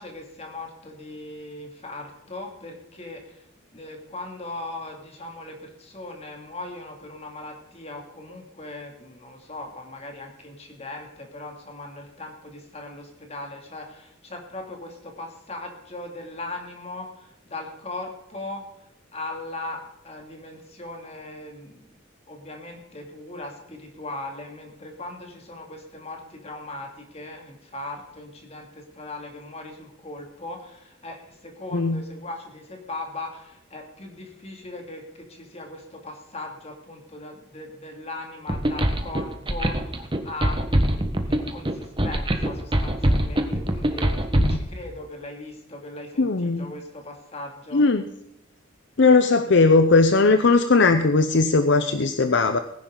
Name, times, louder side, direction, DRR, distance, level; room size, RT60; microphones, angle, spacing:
voice 1, 0.0-3.5 3.7-22.0 22.3-40.6 40.9-44.2 44.5-47.8, left 2 dB, 30° left, 2 dB, 2.7 m, -39 dB
sound 1, 38.5-44.6, right 1 dB, 25° right, 1.3 m, -23 dB
voice 2, 46.2-46.7 47.7-48.1 49.0-52.6, left 3 dB, 60° left, 9 dB, 0.7 m, -18 dB
19.5 x 10.5 x 3.9 m, 0.82 s
head